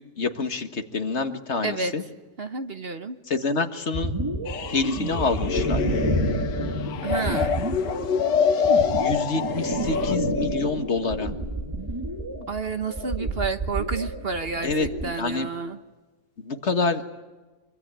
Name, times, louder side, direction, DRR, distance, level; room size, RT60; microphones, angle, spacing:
voice 1, 0.2-2.0 3.3-4.1 4.7-5.8 9.0-11.3 14.6-14.9 15.2-15.5 16.4-17.0, left 3 dB, 40° left, 7 dB, 1.8 m, -27 dB
voice 2, 2.4-3.2 7.0-7.6 12.5-15.8, right 4 dB, 40° right, 8 dB, 1.2 m, -30 dB
sound 1, 3.9-15.1, right 1 dB, 15° right, 2.0 m, -29 dB
sound 2, 4.5-10.1, left 7 dB, 75° left, 1.7 m, -26 dB
25.0 x 24.5 x 8.9 m, 1.2 s
omnidirectional pair, 1.9 m